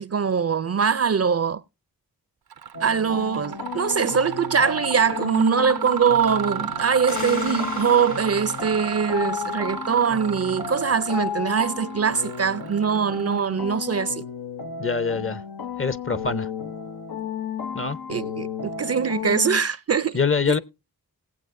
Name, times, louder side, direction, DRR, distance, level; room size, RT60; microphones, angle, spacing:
voice 1, 0.0-1.6 2.8-14.2 18.1-20.2 20.5-20.6, right 6 dB, 45° right, 0.5 m, -22 dB
Mechanisms, 2.5-2.8 3.2-13.8, right 8 dB, 90° right, 0.6 m, -34 dB
sound 1, 2.7-19.6, left 7 dB, 85° left, 0.8 m, -33 dB
sound 2, 7.1-10.4, left 3 dB, 55° left, 1.6 m, -40 dB
voice 2, 14.8-15.4 15.8-16.5 17.7-18.0 20.1-20.6, left 5 dB, 35° left, 0.7 m, -24 dB
19.0 x 7.8 x 2.6 m
cardioid pair, 50°, 36 cm